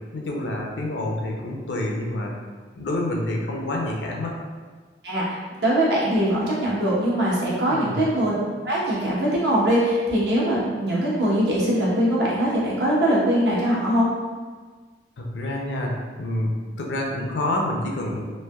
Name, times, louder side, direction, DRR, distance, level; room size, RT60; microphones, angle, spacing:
voice 1, 0.1-2.3 2.8-4.4 7.7-8.0 15.2-15.9 16.2-18.2, left 1 dB, 75° left, 0 dB, 0.5 m, -27 dB
voice 2, 5.0-8.4 8.6-14.1, right 1 dB, 70° right, -7 dB, 0.9 m, -22 dB
3.2 x 2.7 x 2.3 m, 1.5 s
head